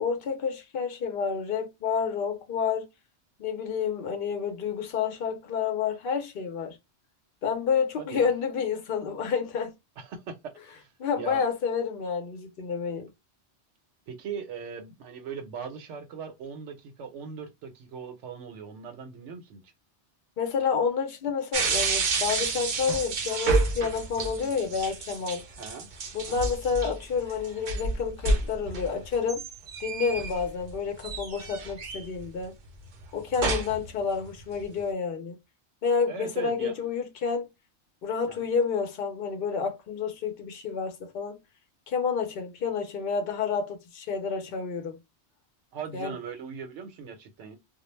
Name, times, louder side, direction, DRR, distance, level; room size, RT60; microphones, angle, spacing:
voice 1, 0.0-2.9 3.4-6.8 7.4-9.7 11.0-13.1 20.4-25.4 26.1-29.4 29.8-32.5 33.1-35.4 35.8-37.5 38.0-41.4 41.9-45.0 45.9-46.1, left 6 dB, 55° left, 0.7 m, -29 dB
voice 2, 8.0-8.3 10.0-10.9 11.2-11.4 14.1-19.6 25.6-25.9 26.3-26.5 36.1-36.7 38.3-38.5 45.7-47.6, right 6 dB, 85° right, 1.0 m, -39 dB
sound 1, 21.5-30.7 31.0-32.3 33.0-33.9 34.3-34.8, right 3 dB, 55° right, 0.6 m, -29 dB
2.3 x 2.1 x 3.1 m
omnidirectional pair, 1.2 m